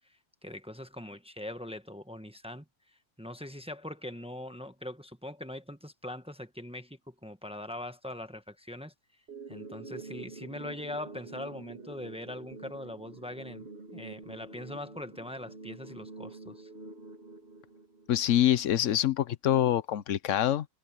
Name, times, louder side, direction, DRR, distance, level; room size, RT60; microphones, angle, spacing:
voice 1, 0.4-2.6 3.2-8.9 9.5-16.7, left 1 dB, 5° right, 1.1 m, -42 dB
sound 1, 9.3-18.3, right 3 dB, 55° right, 3.4 m, -46 dB
voice 2, 18.1-20.7, left 11 dB, 85° left, 1.1 m, -25 dB
omnidirectional pair, 1.3 m